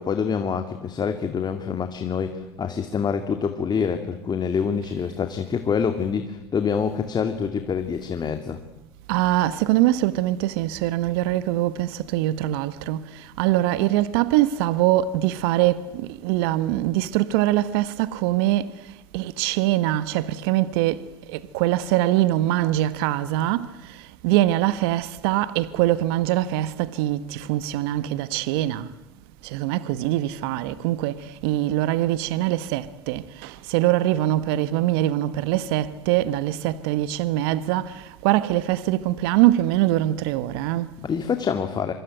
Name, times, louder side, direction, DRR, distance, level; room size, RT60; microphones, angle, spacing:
voice 1, 0.0-8.6 41.0-41.9, left 6 dB, 35° left, 2.5 m, -26 dB
voice 2, 9.1-13.1 13.4-18.7 19.1-23.7 24.2-28.9 29.4-40.9, right 14 dB, 70° right, 1.3 m, -23 dB
25.5 x 25.0 x 9.2 m
hypercardioid pair, 75°, 13 cm